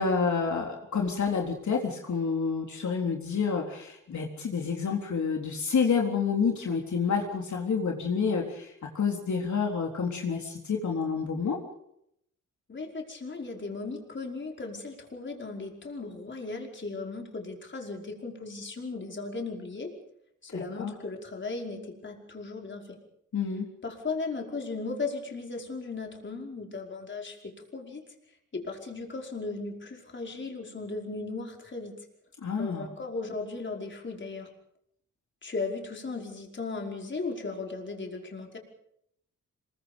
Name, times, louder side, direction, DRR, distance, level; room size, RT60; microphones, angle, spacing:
voice 1, 0.0-11.6 20.5-20.9 23.3-23.7 32.4-32.9, left 5 dB, 65° left, 0 dB, 3.8 m, -29 dB
voice 2, 12.7-19.9 20.4-23.0 23.8-28.0 28.5-31.9 32.6-34.5 35.4-38.6, left 3 dB, 35° left, 1 dB, 5.2 m, -36 dB
27.0 x 23.0 x 5.4 m, 0.75 s
wide cardioid pair, 120°, 31 cm